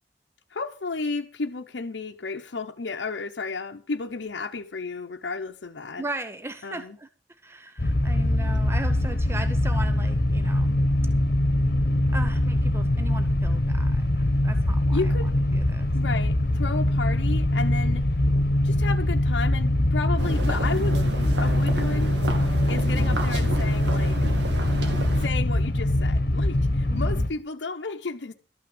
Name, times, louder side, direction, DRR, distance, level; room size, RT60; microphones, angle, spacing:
voice 1, 0.5-6.0 6.6-7.0 14.9-15.3 15.9-18.1 18.6-22.2 22.7-24.2 25.2-28.3, left 3 dB, 80° left, 0.7 m, -32 dB
voice 2, 6.0-10.8 12.1-15.9 22.8-23.2 26.9-27.3, right 1 dB, 15° right, 0.6 m, -38 dB
sound 1, 7.8-27.3, left 1 dB, 55° left, 1.1 m, -23 dB
sound 2, 20.2-25.3, right 1 dB, 75° right, 2.0 m, -33 dB
12.5 x 6.0 x 7.7 m
head